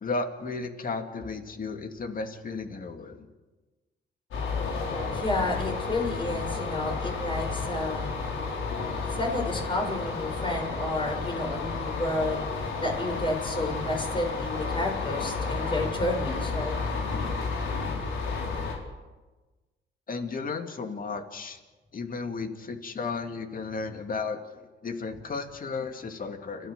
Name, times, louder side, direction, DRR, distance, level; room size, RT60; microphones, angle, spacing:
voice 1, 0.0-3.3 20.1-21.6 21.9-26.7, left 4 dB, 45° left, 6 dB, 2.6 m, -34 dB
sound 1, 4.3-18.7, left 4 dB, 75° left, 4.8 m, -32 dB
voice 2, 5.1-8.2 9.0-12.4 12.8-16.8, left 1 dB, 25° left, 2 dB, 6.5 m, -31 dB
30.0 x 13.5 x 6.9 m, 1.2 s
cardioid pair, 90°, 20 cm